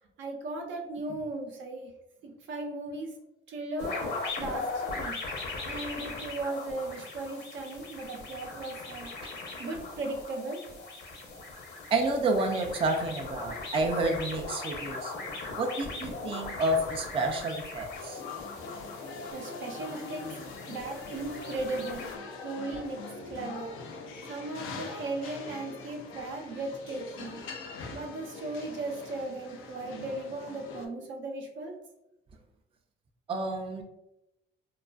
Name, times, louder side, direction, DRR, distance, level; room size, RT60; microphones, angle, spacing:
voice 1, 0.2-1.9 2.2-3.1 3.5-4.1 4.4-5.2 5.6-9.1 9.6-10.6 19.3-20.2 20.7-22.1 22.4-23.0 23.3-24.0 24.3-27.4 27.9-31.7, right 2 dB, 75° right, 1 dB, 0.6 m, -37 dB
sound 1, 3.8-22.2, left 3 dB, 55° left, 0.8 m, -39 dB
voice 2, 11.9-15.1 15.6-18.2 33.3-33.8, right 2 dB, 30° right, 2 dB, 0.4 m, -29 dB
sound 2, 17.9-30.9, left 4 dB, 85° left, 0.4 m, -43 dB
2.4 x 2.3 x 2.3 m, 0.89 s
cardioid pair, 90°, 20 cm